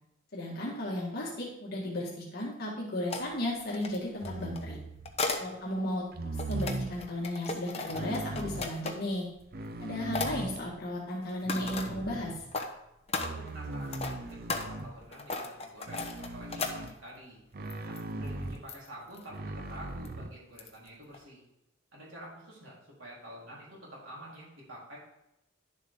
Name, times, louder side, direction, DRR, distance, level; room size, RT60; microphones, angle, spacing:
voice 1, 0.3-4.8 5.4-6.1 6.3-9.3 9.8-12.4, left 1 dB, 55° left, -4 dB, 1.9 m, -35 dB
sound 1, 3.1-3.2 3.7-5.5 6.1-9.1 9.6-9.8 10.1-10.3 11.2-11.9 12.4-12.7 13.1-17.2 17.7-18.0 18.3-18.4 18.7-18.9 19.1-19.2 20.0-20.1 20.6-20.9 21.1-21.2, left 3 dB, 30° left, 1.0 m, -36 dB
sound 2, 4.2-5.2 6.1-7.0 7.9-8.7 9.4-10.8 11.4-12.6 13.2-15.1 15.9-17.0 17.5-18.7 19.3-20.3, right 2 dB, 50° right, 0.6 m, -39 dB
voice 2, 5.3-5.6 13.3-17.4 17.8-21.4 21.9-25.0, equal, 75° right, -6 dB, 4.0 m, -48 dB
11.0 x 7.3 x 3.7 m, 0.85 s
head